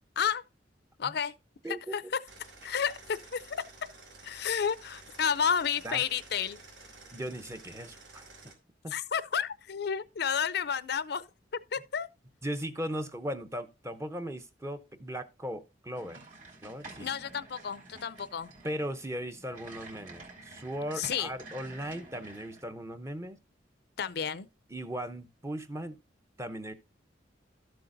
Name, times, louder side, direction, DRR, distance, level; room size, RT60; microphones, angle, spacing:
voice 1, 1.0-1.3 1.7-2.0 2.6-3.6 4.2-6.6 8.9-11.3 11.7-12.1 17.0-18.5 21.0-21.3 24.0-24.5, left 7 dB, 60° left, 0.5 m, -31 dB
voice 2, 1.6-2.0 5.8-6.0 7.1-8.3 8.8-8.9 12.4-16.2 16.6-17.1 18.6-23.4 24.7-26.0 26.4-26.7, equal, 15° right, 0.8 m, -38 dB
sound 1, 2.3-8.6, right 3 dB, 90° right, 3.2 m, -52 dB
sound 2, 15.9-22.6, right 3 dB, 45° right, 3.0 m, -49 dB
13.0 x 7.8 x 2.6 m
head